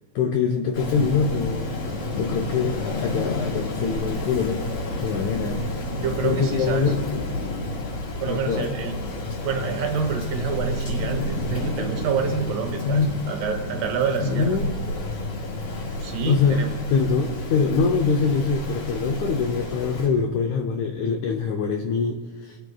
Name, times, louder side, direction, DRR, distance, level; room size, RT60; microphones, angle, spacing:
voice 1, 0.2-1.7 2.1-4.6 5.0-5.6 6.2-7.2 8.3-8.7 12.8-13.1 14.2-15.0 16.2-16.6 16.9-22.6, left 5 dB, 75° left, 3 dB, 1.8 m, -24 dB
Rain, 0.7-20.1, left 1 dB, 55° left, 4.9 m, -30 dB
voice 2, 5.9-6.9 8.2-8.9 9.4-14.6 16.0-16.7, right 6 dB, 75° right, 4 dB, 2.7 m, -28 dB
21.5 x 8.2 x 2.3 m, 1.5 s
omnidirectional pair, 3.9 m